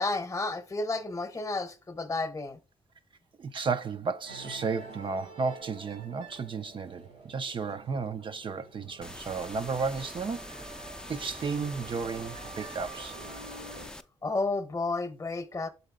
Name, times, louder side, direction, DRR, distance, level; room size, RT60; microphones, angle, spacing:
voice 1, 0.0-2.6 14.2-15.7, left 3 dB, 30° left, 0.9 m, -31 dB
voice 2, 3.4-10.5 11.1-13.2, right 5 dB, 45° right, 0.5 m, -33 dB
sound 1, 4.3-13.9, right 4 dB, 90° right, 1.7 m, -48 dB
sound 2, 9.0-14.0, left 1 dB, 5° left, 0.5 m, -44 dB
6.6 x 4.0 x 3.7 m
supercardioid pair, 60°, 12 cm